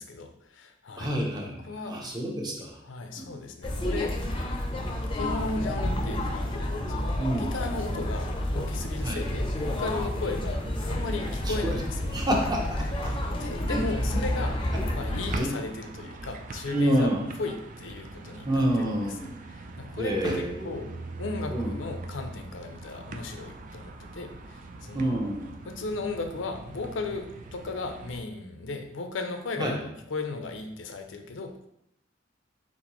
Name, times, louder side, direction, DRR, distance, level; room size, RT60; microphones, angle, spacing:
voice 1, 0.0-1.1 1.4-2.0 2.8-4.2 5.1-12.3 12.8-14.5 14.9-17.1 17.4-20.9 21.2-25.2 25.6-31.5, left 3 dB, 70° left, 6 dB, 0.5 m, -36 dB
voice 2, 1.0-1.6 1.9-2.7 3.2-3.3 7.2-7.5 9.0-9.2 11.5-11.8 12.1-13.1 13.7-13.8 14.7-14.8 15.3-15.5 16.7-17.2 18.4-19.3 20.0-20.8 21.5-21.7 24.9-25.5 29.6-29.7, right 1 dB, 20° right, 0 dB, 0.8 m, -28 dB
sound 1, 3.6-15.4, left 1 dB, 25° left, 0.6 m, -30 dB
sound 2, 10.9-28.2, right 2 dB, 45° right, 0.4 m, -43 dB
4.1 x 3.7 x 3.0 m, 0.80 s
head